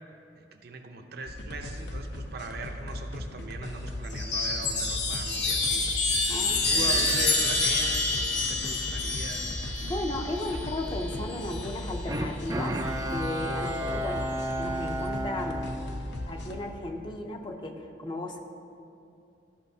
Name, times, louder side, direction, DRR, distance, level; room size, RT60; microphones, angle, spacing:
voice 1, 0.4-5.9 6.3-9.5, right 3 dB, 60° right, 4 dB, 0.6 m, -40 dB
sound 1, 1.3-16.6, left 1 dB, 70° left, 0.7 m, -38 dB
Chime, 4.1-11.9 13.1-13.7, left 3 dB, 90° left, 1.2 m, -28 dB
voice 2, 6.3-7.1 9.8-12.8 13.1-15.7 16.3-18.4, left 1 dB, 25° left, 3 dB, 0.6 m, -35 dB
Bowed string instrument, 12.1-16.6 17.0-17.1, right 1 dB, 20° right, 0.4 m, -33 dB
13.5 x 5.7 x 2.8 m, 2.6 s
head